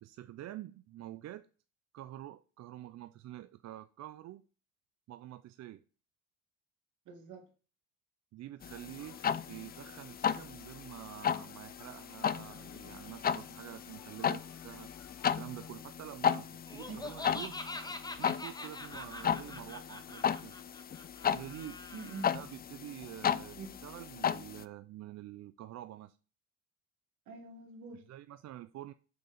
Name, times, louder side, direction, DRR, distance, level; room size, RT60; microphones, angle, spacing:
voice 1, 0.0-1.5 1.9-4.4 5.1-5.8 8.3-9.2 9.5-14.9 15.4-17.6 18.1-20.5 21.3-21.8 22.3-23.6 23.8-26.2 27.9-28.9, right 13 dB, 60° right, 0.4 m, -47 dB
voice 2, 7.1-7.5 16.9-17.0 21.9-22.4 23.2-23.7 27.3-28.0, right 4 dB, 80° right, 1.7 m, -46 dB
sound 1, 8.6-24.6, left 8 dB, 30° left, 0.4 m, -35 dB
sound 2, 9.0-15.7, left 8 dB, 75° left, 1.0 m, -60 dB
Laughter, 16.7-22.3, left 2 dB, 15° left, 0.8 m, -44 dB
6.6 x 4.4 x 4.9 m
cardioid pair, 90°, 30 cm